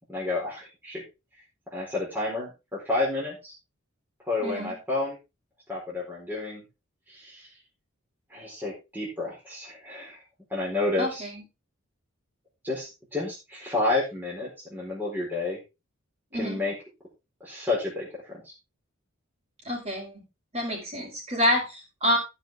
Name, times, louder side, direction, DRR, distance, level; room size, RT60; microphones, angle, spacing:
voice 1, 0.1-1.0 1.7-3.5 4.2-5.2 5.7-6.6 7.1-7.5 8.3-10.2 10.5-11.3 12.6-15.6 16.3-16.7 17.4-18.5, left 2 dB, 10° right, -6 dB, 4.5 m, -30 dB
voice 2, 4.4-4.8 11.0-11.4 16.3-16.6 19.6-20.3 20.5-22.2, equal, 30° right, -2 dB, 5.7 m, -28 dB
15.5 x 5.8 x 3.6 m, 0.26 s
head